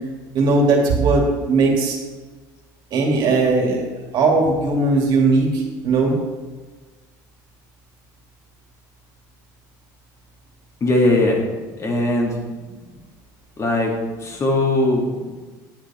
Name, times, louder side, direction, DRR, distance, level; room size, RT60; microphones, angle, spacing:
voice 1, 0.3-2.0 2.9-3.8 4.1-6.1, right 3 dB, 55° right, -1 dB, 2.9 m, -18 dB
voice 2, 10.8-11.4 11.8-12.4 13.6-13.9 14.2-15.4, left 1 dB, 30° left, 0 dB, 2.4 m, -19 dB
10.5 x 8.2 x 4.5 m, 1.3 s
supercardioid pair, 95°, 9 cm